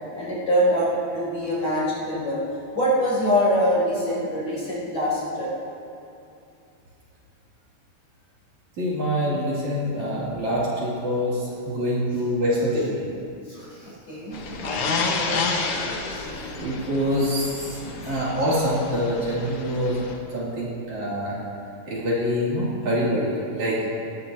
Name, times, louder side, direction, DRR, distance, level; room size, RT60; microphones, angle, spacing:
voice 1, 0.1-2.4 2.7-5.5 13.5-15.4, equal, 40° left, -8 dB, 5.2 m, -24 dB
voice 2, 8.8-13.0 14.9-15.1 16.6-20.0 20.3-21.4 21.9-23.9, equal, 55° right, -8 dB, 4.0 m, -25 dB
sound 1, 14.3-20.2, left 4 dB, 80° left, 1.3 m, -30 dB
19.0 x 17.0 x 2.9 m, 2.6 s
omnidirectional pair, 4.3 m